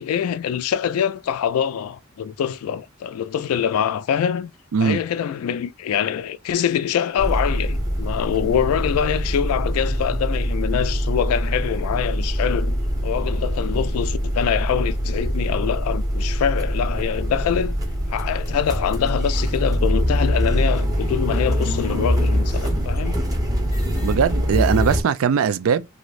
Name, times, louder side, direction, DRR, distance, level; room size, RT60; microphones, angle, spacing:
voice 1, 0.0-4.5 4.8-12.8 13.0-17.8 18.1-23.2, left 8 dB, 90° left, 0.3 m, -24 dB
sound 1, 7.2-25.0, equal, 15° right, 0.9 m, -23 dB
voice 2, 24.0-25.9, right 6 dB, 70° right, 0.3 m, -20 dB
3.1 x 2.6 x 2.4 m
head